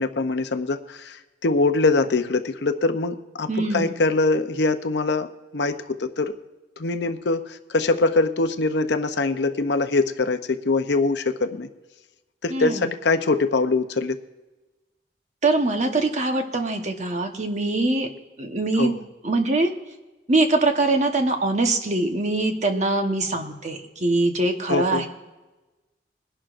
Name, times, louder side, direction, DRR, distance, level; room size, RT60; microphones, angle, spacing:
voice 1, 0.0-5.3 5.5-6.3 6.8-11.7 12.4-14.2 18.8-18.9 24.7-25.0, left 3 dB, 75° left, 8 dB, 0.7 m, -23 dB
voice 2, 3.5-3.9 12.5-12.9 15.4-18.1 18.4-18.9 19.2-19.7 20.3-25.1, right 2 dB, 40° right, 4 dB, 1.1 m, -23 dB
22.0 x 11.0 x 2.5 m, 1.1 s
head